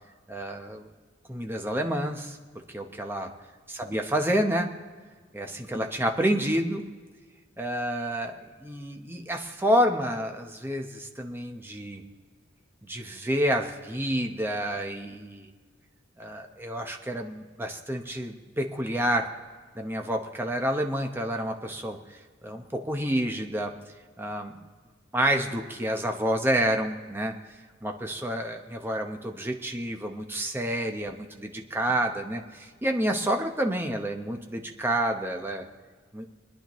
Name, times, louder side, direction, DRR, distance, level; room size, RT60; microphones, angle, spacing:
voice 1, 0.3-0.9 1.3-3.3 3.7-4.8 5.3-6.9 7.6-12.0 12.8-15.5 16.2-19.3 19.7-22.0 22.4-23.8 24.2-24.6 25.1-27.4 27.8-35.7 36.1-36.2, right 1 dB, 10° right, 3 dB, 0.9 m, -29 dB
28.5 x 10.0 x 3.1 m, 1.5 s
head